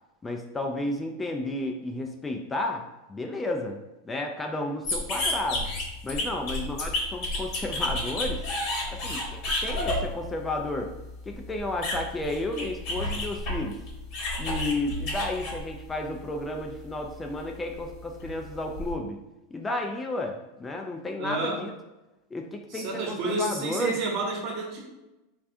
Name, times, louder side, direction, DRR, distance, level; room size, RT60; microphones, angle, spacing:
voice 1, 0.2-5.7 6.0-8.4 8.9-10.9 11.3-13.8 14.4-19.2 19.5-21.7 22.3-24.0, left 2 dB, 15° left, 2 dB, 0.3 m, -32 dB
sound 1, 4.8-16.2 16.6-18.9, left 1 dB, 55° left, 1.0 m, -32 dB
voice 2, 21.2-21.6 22.7-24.9, right 3 dB, 50° right, -1 dB, 0.9 m, -30 dB
3.2 x 2.3 x 2.6 m, 1.0 s
hypercardioid pair, 110°, 0 cm